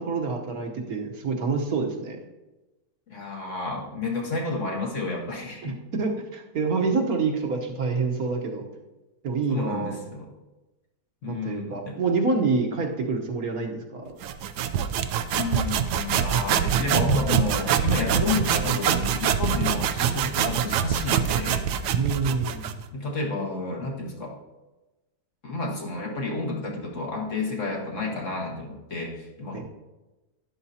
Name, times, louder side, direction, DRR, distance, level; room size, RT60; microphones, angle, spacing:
voice 1, 0.0-2.2 5.6-8.6 9.2-10.0 11.3-14.1 21.9-22.7 29.5-29.6, right 4 dB, 65° right, 2 dB, 1.5 m, -27 dB
voice 2, 3.1-5.8 9.5-10.3 11.2-12.0 15.3-21.7 22.9-24.4 25.4-29.6, left 3 dB, 50° left, 0 dB, 1.7 m, -31 dB
sound 1, 14.2-22.8, right 8 dB, 85° right, 1.2 m, -25 dB
12.0 x 10.5 x 2.8 m, 1.1 s
omnidirectional pair, 1.7 m